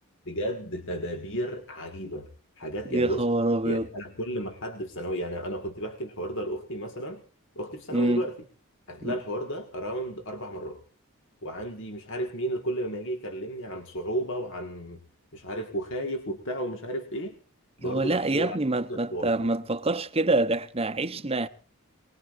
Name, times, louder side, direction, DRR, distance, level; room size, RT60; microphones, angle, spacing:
voice 1, 0.3-2.3 2.6-3.3 3.6-7.2 7.6-8.4 8.9-10.8 11.4-15.0 15.3-17.4 17.8-18.6 18.9-19.3, equal, 60° left, 1.8 m, -33 dB
voice 2, 2.9-3.9 7.9-8.2 9.0-9.1 17.8-21.5, right 2 dB, 25° right, 0.8 m, -26 dB
24.0 x 20.0 x 2.6 m
head